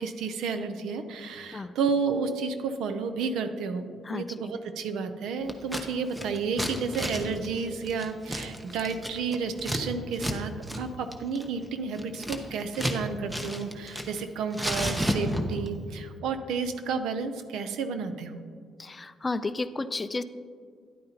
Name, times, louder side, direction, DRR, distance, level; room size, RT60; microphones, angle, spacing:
voice 1, 0.0-18.4, right 5 dB, 85° right, 9 dB, 0.6 m, -31 dB
voice 2, 4.0-4.4 18.8-20.2, left 3 dB, 25° left, 13 dB, 0.3 m, -32 dB
Scissors, 5.5-5.8 6.1-9.8 10.1-10.4 10.6-10.8 11.1-13.0 13.3-14.2 14.5-15.7, equal, 10° right, 0.9 m, -32 dB
10.0 x 9.0 x 2.9 m, 2.1 s
cardioid pair, 90°, 0 cm